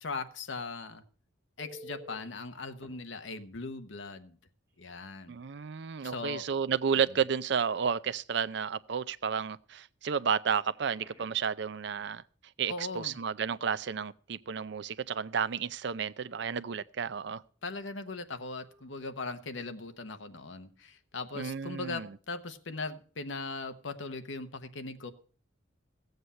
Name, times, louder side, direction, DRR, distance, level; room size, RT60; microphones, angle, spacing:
voice 1, 0.0-1.0 1.6-4.4 4.8-5.4 6.0-6.4 12.7-13.1 17.6-25.1, left 3 dB, 70° left, 1.0 m, -39 dB
Telephone, 1.6-2.3 2.8-2.9 4.7-4.8 5.2-5.4 10.7-11.5 18.6-18.8, equal, 15° right, 3.4 m, -50 dB
voice 2, 5.3-12.2 12.6-17.4 21.3-22.2, right 6 dB, 60° right, 0.5 m, -32 dB
15.0 x 8.0 x 5.5 m
head